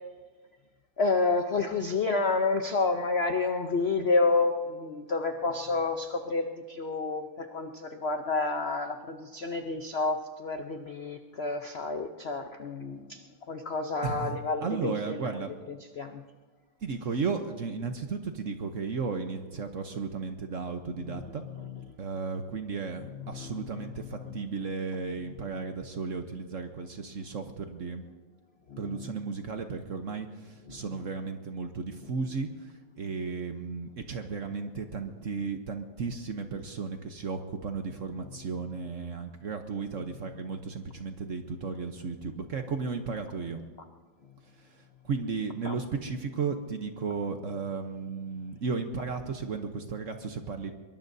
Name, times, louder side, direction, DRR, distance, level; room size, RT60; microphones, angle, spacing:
voice 1, 1.0-13.2 13.5-15.2 16.0-16.2 21.1-21.2 23.4-23.5 24.2-24.3 28.7-28.8 45.7-45.8, left 3 dB, 85° left, 5 dB, 0.5 m, -29 dB
voice 2, 14.0-15.5 16.8-21.4 22.0-28.0 28.8-43.6 44.6-50.7, right 5 dB, 50° right, 6 dB, 1.0 m, -34 dB
23.5 x 22.0 x 2.7 m, 1.4 s
omnidirectional pair, 2.2 m